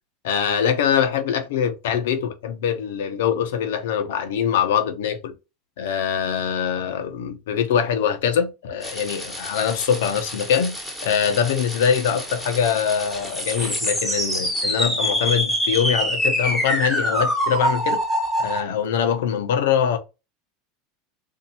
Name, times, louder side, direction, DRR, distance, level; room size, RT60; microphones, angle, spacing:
voice 1, 0.2-5.3 5.8-18.0 18.4-20.0, left 8 dB, 80° left, 0.9 m, -23 dB
sound 1, 8.8-18.6, equal, ahead, 1.3 m, -26 dB
2.7 x 2.6 x 4.2 m
supercardioid pair, 125°, 0 cm